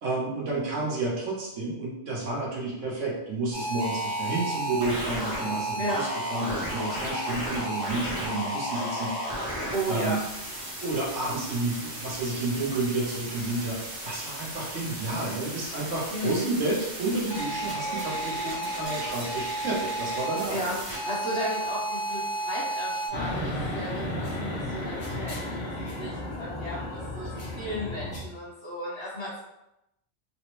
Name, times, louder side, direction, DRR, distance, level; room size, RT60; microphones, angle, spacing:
voice 1, 0.0-9.6 9.9-10.2 10.8-20.7, right 2 dB, 85° right, -4 dB, 1.3 m, -31 dB
sound 1, 3.5-23.1, right 1 dB, 45° right, 0.8 m, -33 dB
voice 2, 9.7-10.2 16.1-16.4 20.5-29.4, equal, 10° left, -13 dB, 0.8 m, -34 dB
sound 2, 23.1-28.2, left 1 dB, 65° left, 1.0 m, -33 dB
3.3 x 2.0 x 3.0 m, 0.86 s
omnidirectional pair, 1.2 m